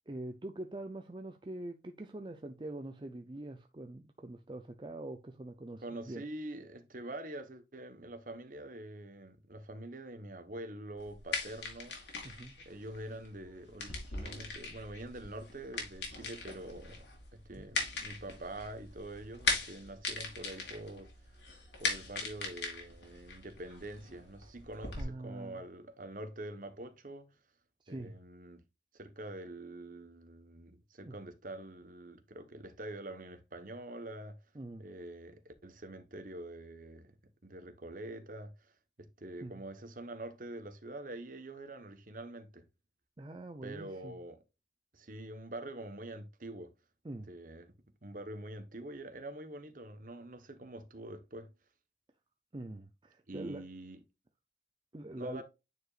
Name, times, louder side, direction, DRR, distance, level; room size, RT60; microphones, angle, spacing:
voice 1, 0.0-6.2 12.2-12.6 17.6-17.7 25.0-25.6 27.8-28.2 31.0-31.2 34.5-34.9 39.4-39.6 43.2-44.2 47.0-47.3 52.5-53.6 54.9-55.4, right 1 dB, 25° right, 0.5 m, -44 dB
voice 2, 5.8-12.0 12.6-17.0 17.3-21.1 21.8-27.3 27.9-28.6 28.9-34.4 34.8-37.1 37.4-38.7 39.0-42.7 43.6-44.4 44.9-46.7 47.3-47.7 48.0-51.5 53.3-54.0 55.2-55.4, right 1 dB, 50° right, 1.1 m, -45 dB
sound 1, 11.0-25.0, left 3 dB, 90° left, 2.9 m, -40 dB
9.4 x 4.8 x 2.4 m
head